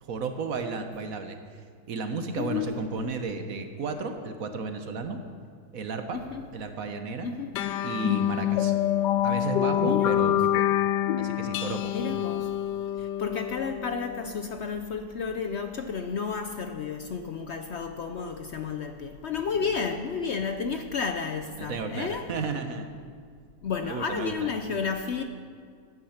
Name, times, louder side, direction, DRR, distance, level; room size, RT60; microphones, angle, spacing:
voice 1, 0.0-1.4 1.9-5.2 5.7-6.2 6.5-7.3 7.8-8.7 9.2-10.6 11.2-11.9 19.6-19.7 21.6-22.9 23.8-24.5, right 4 dB, 60° right, 7 dB, 1.2 m, -33 dB
voice 2, 2.4-2.8 6.1-6.5 7.2-7.5 9.8-10.4 11.9-12.5 13.0-22.3 23.6-25.2, left 5 dB, 65° left, 7 dB, 0.6 m, -32 dB
sound 1, 7.5-14.4, left 12 dB, 85° left, 1.2 m, -26 dB
14.5 x 9.7 x 5.7 m, 2.1 s
omnidirectional pair, 1.8 m